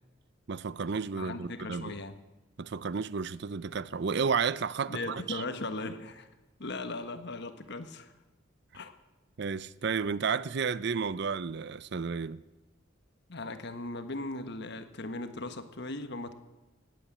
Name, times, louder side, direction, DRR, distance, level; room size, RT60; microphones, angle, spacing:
voice 1, 0.5-2.0 2.6-5.4 9.4-12.4, right 5 dB, 55° right, 0.5 m, -32 dB
voice 2, 1.1-2.1 4.9-6.3 6.6-8.1 8.7-8.9 13.3-16.3, left 2 dB, 55° left, 1.3 m, -38 dB
18.5 x 8.5 x 8.4 m
head